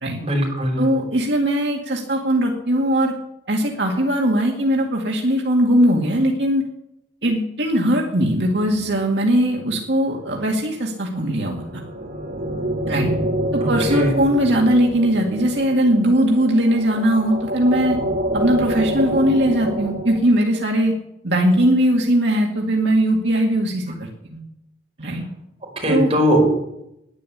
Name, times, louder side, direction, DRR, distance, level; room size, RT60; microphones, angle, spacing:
voice 1, 0.2-0.8 13.6-14.1 25.8-26.5, right 1 dB, 35° right, -2 dB, 5.3 m, -19 dB
voice 2, 0.8-3.1 3.5-6.6 7.2-11.8 12.9-13.1 13.5-18.0 18.3-20.9 21.2-24.4 25.0-25.3 25.9-26.1, equal, 80° right, -1 dB, 2.1 m, -19 dB
sound 1, 11.3-20.1, right 1 dB, 60° right, 3.3 m, -26 dB
11.0 x 10.0 x 8.5 m, 0.84 s
head